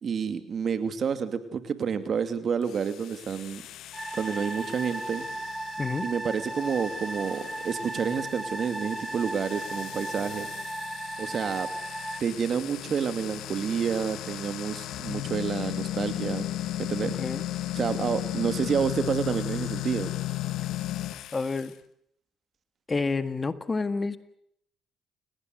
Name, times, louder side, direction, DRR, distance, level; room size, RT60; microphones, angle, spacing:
voice 1, 0.0-3.6 4.1-5.2 6.0-10.5 11.2-11.7 12.2-16.5 16.8-17.2 17.7-20.1, right 6 dB, 50° right, 10 dB, 2.6 m, -29 dB
sound 1, 2.6-21.7, left 14 dB, 75° left, 1.3 m, -36 dB
sound 2, 3.9-12.2, right 1 dB, 10° right, 1.8 m, -36 dB
voice 2, 17.0-17.5 21.3-21.7 22.9-24.2, left 4 dB, 30° left, 11 dB, 1.8 m, -29 dB
29.5 x 18.0 x 8.0 m, 0.72 s
supercardioid pair, 75°, 0 cm